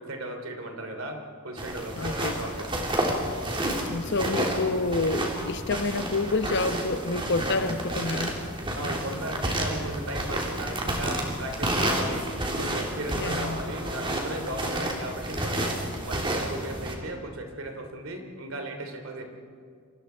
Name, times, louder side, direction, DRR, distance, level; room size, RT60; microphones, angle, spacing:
voice 1, 0.0-3.0 8.7-19.2, right 1 dB, 70° right, 4 dB, 3.1 m, -36 dB
sound 1, 1.6-16.9, right 1 dB, 25° right, 3.1 m, -30 dB
voice 2, 2.0-2.3 3.9-8.3 13.1-13.6, left 3 dB, 55° left, 10 dB, 1.0 m, -28 dB
29.5 x 24.5 x 4.6 m, 2.3 s
head